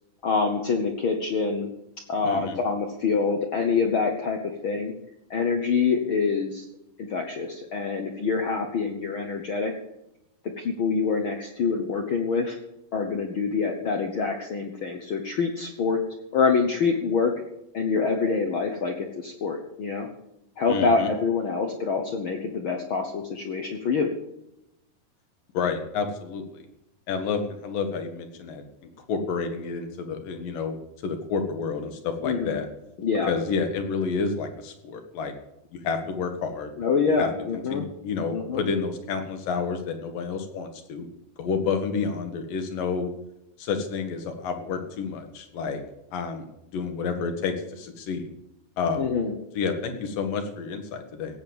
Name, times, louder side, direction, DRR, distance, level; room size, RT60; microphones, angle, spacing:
voice 1, 0.2-1.7 2.1-4.9 5.3-6.6 7.0-9.7 10.6-12.6 12.9-16.0 16.3-17.3 17.7-20.1 20.6-24.1 32.2-32.6 33.0-33.3 36.8-37.8 38.3-38.6 49.0-49.3, left 5 dB, 65° left, 3 dB, 1.2 m, -26 dB
voice 2, 2.2-2.6 20.7-21.1 25.5-26.7 27.1-28.7 29.1-30.7 31.0-32.7 33.3-35.3 35.7-36.7 37.2-37.3 37.7-41.0 41.4-43.1 43.6-45.8 46.1-48.3 48.8-49.1 49.5-51.4, left 5 dB, 90° left, 6 dB, 3.3 m, -29 dB
17.0 x 8.1 x 7.1 m, 0.85 s
omnidirectional pair, 3.8 m